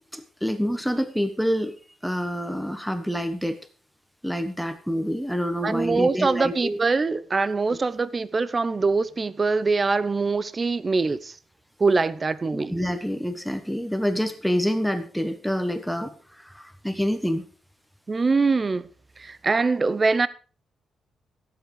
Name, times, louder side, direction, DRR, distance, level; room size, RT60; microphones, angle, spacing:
voice 1, 0.1-1.7 2.0-3.6 4.2-6.8 12.5-17.5, equal, ahead, 1.3 m, -27 dB
voice 2, 5.6-11.3 11.8-12.7 18.1-18.9 19.2-20.3, right 4 dB, 30° right, 0.7 m, -23 dB
17.0 x 8.0 x 4.8 m
cardioid pair, 105°, 0 cm